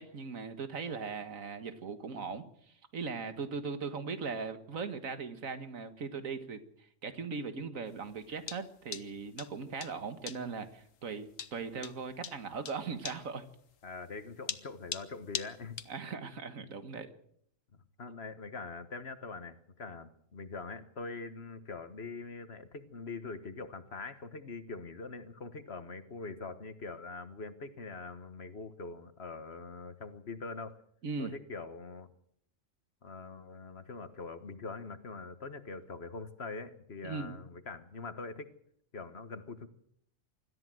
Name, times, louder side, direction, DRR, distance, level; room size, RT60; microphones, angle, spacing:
voice 1, 0.0-2.5 2.9-13.5 15.9-17.1 31.0-31.3 37.0-37.4, right 5 dB, 85° right, 10 dB, 2.0 m, -39 dB
sound 1, 7.9-16.0, left 8 dB, 75° left, 1.4 m, -42 dB
voice 2, 13.8-15.8 18.0-30.8 31.2-32.1 33.0-38.5 38.9-39.7, left 4 dB, 50° left, 11 dB, 1.6 m, -43 dB
25.5 x 13.5 x 7.7 m, 0.69 s
omnidirectional pair, 1.4 m